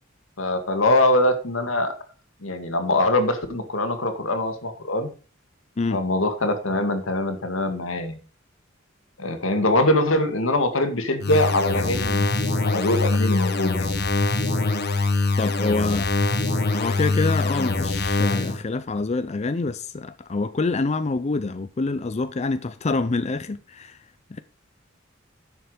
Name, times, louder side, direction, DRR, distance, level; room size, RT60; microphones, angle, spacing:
voice 1, 0.4-1.9 2.4-5.1 5.9-8.2 9.2-12.4 12.6-13.9 16.3-16.4, left 1 dB, 85° left, 2.1 m, -23 dB
sound 1, 11.2-18.6, left 3 dB, 55° left, 1.5 m, -23 dB
voice 2, 15.4-16.1 16.7-24.0 24.3-24.4, left 3 dB, 35° left, 0.5 m, -26 dB
10.5 x 7.2 x 5.0 m
head